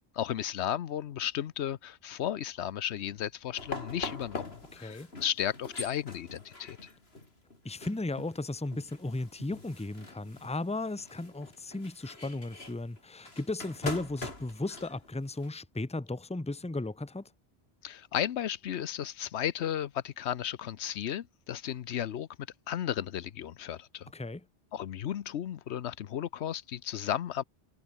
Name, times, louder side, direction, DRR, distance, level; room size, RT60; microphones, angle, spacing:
voice 1, 0.1-6.8 17.8-22.3 22.7-24.1 24.7-27.4, left 10 dB, 90° left, 1.0 m, -34 dB
sound 1, 3.6-15.5, left 2 dB, 70° left, 4.3 m, -44 dB
voice 2, 4.7-5.1 7.6-17.3 24.1-24.4, left 2 dB, 5° left, 0.8 m, -35 dB
omnidirectional pair, 1.1 m